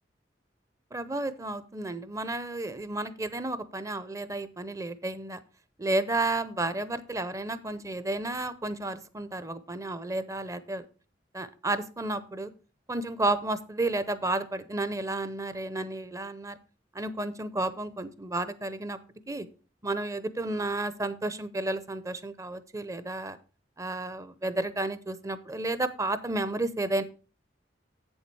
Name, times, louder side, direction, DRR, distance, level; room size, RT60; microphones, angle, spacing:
voice 1, 0.9-5.4 5.8-10.8 11.3-12.5 12.9-16.6 16.9-19.0 19.3-19.5 19.8-23.4 23.8-27.0, right 2 dB, 20° right, 13 dB, 0.7 m, -32 dB
8.2 x 7.2 x 4.6 m, 0.35 s
head